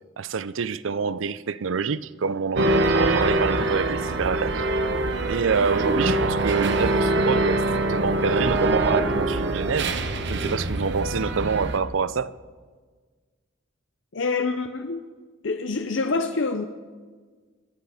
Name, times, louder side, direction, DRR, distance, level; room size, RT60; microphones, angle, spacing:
voice 1, 0.2-4.6 5.3-10.0 10.3-12.3, right 5 dB, 75° right, 0.5 m, -26 dB
sound 1, 2.6-11.8, right 2 dB, 60° right, 1.2 m, -24 dB
voice 2, 14.1-15.0 15.4-16.7, left 4 dB, 65° left, 0.7 m, -26 dB
25.0 x 11.0 x 5.0 m
head